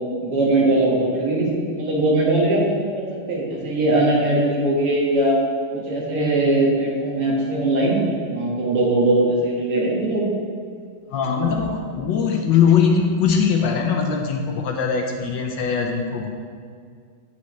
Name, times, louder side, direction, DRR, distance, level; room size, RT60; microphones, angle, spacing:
voice 1, 0.2-5.4 5.7-8.0 8.3-10.3, right 2 dB, 90° right, -4 dB, 2.6 m, -20 dB
voice 2, 11.1-16.3, left 6 dB, 70° left, 3 dB, 1.2 m, -21 dB
9.2 x 8.9 x 3.2 m, 2.1 s
omnidirectional pair, 2.4 m